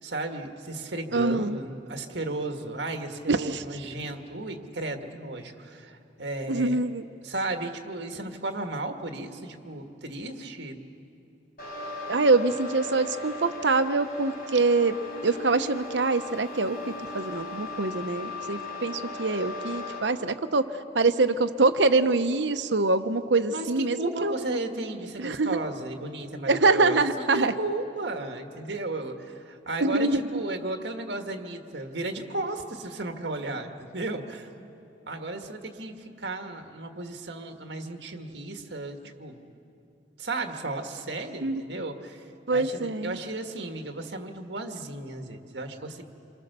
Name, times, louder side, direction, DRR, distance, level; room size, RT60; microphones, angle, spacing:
voice 1, 0.0-6.8 7.2-10.8 23.5-34.5 35.1-39.4 40.2-42.2 42.5-46.0, right 2 dB, 75° right, 5 dB, 1.8 m, -34 dB
voice 2, 1.1-1.6 3.3-3.6 6.5-7.0 12.1-14.9 15.2-16.8 17.1-20.6 20.9-24.3 25.2-25.6 26.5-27.5 29.8-30.3 41.4-41.6 42.5-43.2, right 3 dB, 90° right, 10 dB, 0.9 m, -24 dB
sound 1, 11.6-20.0, left 2 dB, 50° left, 5.5 m, -38 dB
27.5 x 23.5 x 6.8 m, 2.8 s
head